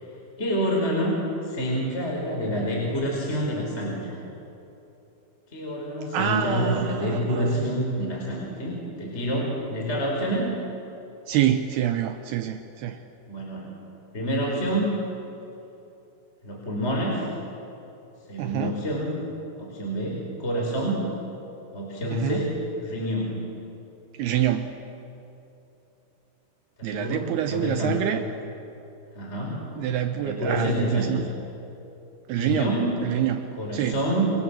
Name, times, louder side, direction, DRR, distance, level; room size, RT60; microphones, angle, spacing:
voice 1, 0.4-4.1 5.5-10.5 13.3-13.7 14.1-14.9 16.4-17.3 18.3-19.1 19.6-21.0 21.7-22.6 22.8-23.4 26.8-28.0 29.1-29.6 30.2-31.1 32.3-33.0 33.6-34.3, equal, 15° left, -1 dB, 4.5 m, -27 dB
voice 2, 6.1-7.7 11.3-13.0 18.4-18.8 22.1-22.4 24.2-24.8 26.8-28.2 29.8-31.2 32.3-32.7 33.0-34.0, right 11 dB, 85° right, 7 dB, 2.2 m, -26 dB
28.5 x 27.5 x 7.5 m, 2.9 s
omnidirectional pair, 5.9 m